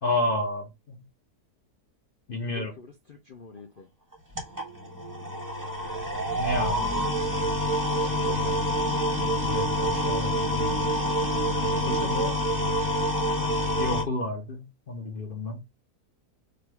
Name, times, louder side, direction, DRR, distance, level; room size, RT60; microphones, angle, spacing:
voice 1, 0.0-1.0 2.3-2.7 6.3-7.0 9.4-10.5 11.6-12.4 13.8-15.6, left 1 dB, 45° left, 0.8 m, -31 dB
voice 2, 2.4-3.9 7.9-8.6, left 4 dB, 70° left, 0.5 m, -45 dB
sound 1, 4.1-14.0, equal, 15° right, 0.7 m, -27 dB
sound 2, 6.9-12.1, right 5 dB, 50° right, 0.8 m, -40 dB
3.4 x 2.6 x 4.4 m
omnidirectional pair, 1.7 m